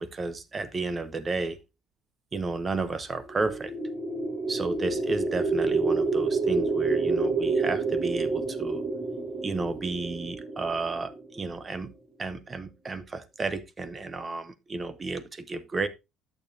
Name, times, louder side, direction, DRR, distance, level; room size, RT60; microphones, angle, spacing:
voice 1, 0.0-1.6 2.3-3.7 4.5-8.8 9.4-11.9 12.2-15.9, right 3 dB, 20° right, 0.6 m, -32 dB
sound 1, 3.2-11.4, right 3 dB, 40° right, 5.1 m, -28 dB
11.5 x 6.8 x 2.6 m
cardioid pair, 155°, 0 cm